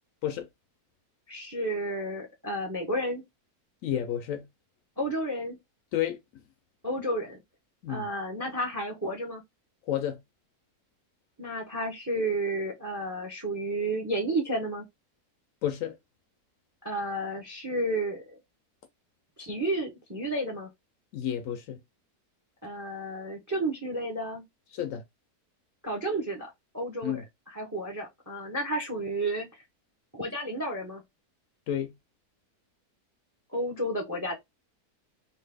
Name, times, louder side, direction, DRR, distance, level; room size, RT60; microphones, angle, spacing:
voice 1, 1.3-3.2 5.0-5.6 6.8-7.4 7.9-9.4 11.4-14.8 16.8-18.4 19.4-20.7 22.6-24.4 25.8-29.5 30.1-31.0 33.5-34.3, right 1 dB, 20° right, 0.4 m, -32 dB
voice 2, 3.8-4.4 5.9-6.2 7.8-8.1 9.9-10.2 15.6-16.0 21.1-21.8 24.7-25.0 27.0-27.2 31.7-31.9, left 10 dB, 70° left, 0.9 m, -30 dB
2.7 x 2.3 x 3.4 m
omnidirectional pair, 1.6 m